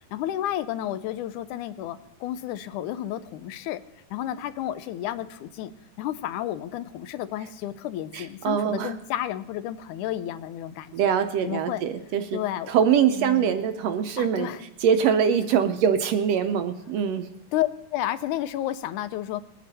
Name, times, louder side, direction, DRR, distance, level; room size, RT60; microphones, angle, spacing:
voice 1, 0.1-3.8 4.1-11.2 11.4-11.8 12.3-12.7 13.2-13.6 14.2-14.6 17.5-19.4, left 12 dB, 85° left, 12 dB, 2.2 m, -31 dB
voice 2, 8.1-8.9 10.9-12.4 12.7-14.5 14.8-17.3, right 8 dB, 75° right, 9 dB, 1.6 m, -23 dB
21.5 x 9.3 x 4.1 m, 0.93 s
omnidirectional pair, 3.5 m